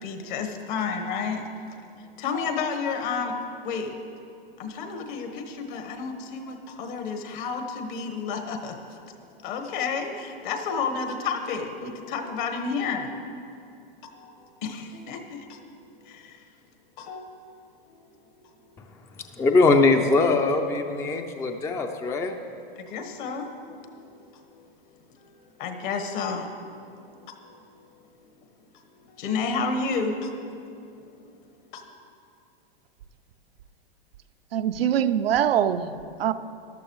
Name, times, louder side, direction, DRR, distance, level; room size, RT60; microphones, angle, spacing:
voice 1, 0.0-1.5 2.2-3.4 3.6-3.9 4.6-8.8 9.4-13.1 14.1-15.6 16.0-16.4 17.0-17.3 22.8-23.5 23.8-24.4 25.6-26.5 27.3-27.4 29.1-30.3 31.1-31.3 31.7-31.8, left 5 dB, 55° left, 5 dB, 1.4 m, -31 dB
voice 2, 19.4-22.4, left 3 dB, 10° left, 5 dB, 0.4 m, -21 dB
voice 3, 34.5-36.3, right 10 dB, 80° right, 10 dB, 0.6 m, -23 dB
14.0 x 11.5 x 3.1 m, 2.6 s
hypercardioid pair, 120°, 29 cm